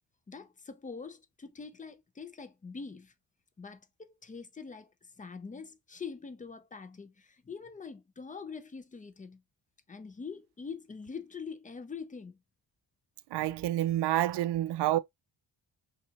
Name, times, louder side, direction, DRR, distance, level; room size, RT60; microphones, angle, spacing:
voice 1, 0.3-3.1 3.6-9.4 9.9-12.4, left 5 dB, 20° left, 0.4 m, -44 dB
voice 2, 13.3-15.0, right 14 dB, 60° right, 0.5 m, -28 dB
5.8 x 2.4 x 2.8 m
cardioid pair, 140°, 48 cm